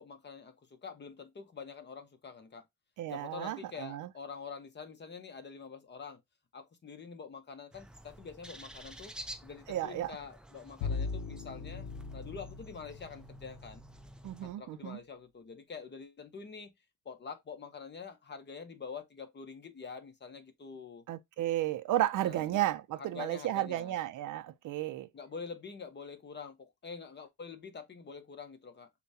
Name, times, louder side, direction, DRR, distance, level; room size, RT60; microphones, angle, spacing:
voice 1, 0.0-2.7 3.1-6.2 6.5-9.1 9.4-13.8 14.4-16.7 17.0-21.0 22.2-22.5 23.0-23.9 25.1-28.9, left 5 dB, 30° left, 0.8 m, -46 dB
voice 2, 3.0-4.1 9.7-10.2 14.2-15.0 21.1-25.1, right 13 dB, 60° right, 0.5 m, -33 dB
sound 1, 7.7-14.5, right 1 dB, ahead, 0.4 m, -50 dB
Bowed string instrument, 10.8-13.9, left 5 dB, 70° left, 0.5 m, -39 dB
6.7 x 2.2 x 2.7 m
cardioid pair, 100°, 36 cm